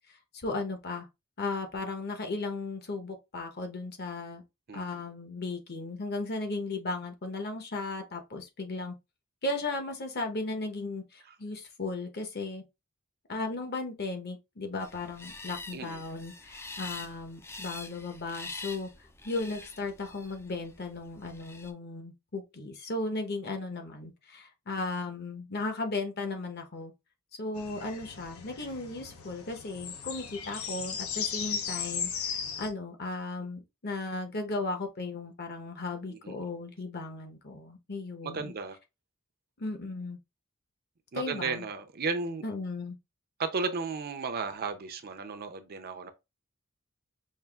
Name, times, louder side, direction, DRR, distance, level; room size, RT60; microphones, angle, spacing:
voice 1, 0.3-1.1 1.4-4.4 4.7-8.9 9.4-12.6 13.3-18.9 19.2-26.9 27.4-38.5 39.6-40.2 41.1-41.6 42.4-43.0, left 3 dB, 50° left, 0.9 m, -36 dB
sound 1, 14.8-21.7, left 3 dB, 10° left, 0.3 m, -45 dB
voice 2, 15.7-16.0 36.1-36.4 38.2-38.8 41.1-42.4 43.4-46.1, right 4 dB, 45° right, 0.5 m, -34 dB
sound 2, 27.6-32.7, left 7 dB, 85° left, 0.8 m, -36 dB
5.5 x 2.5 x 2.3 m
head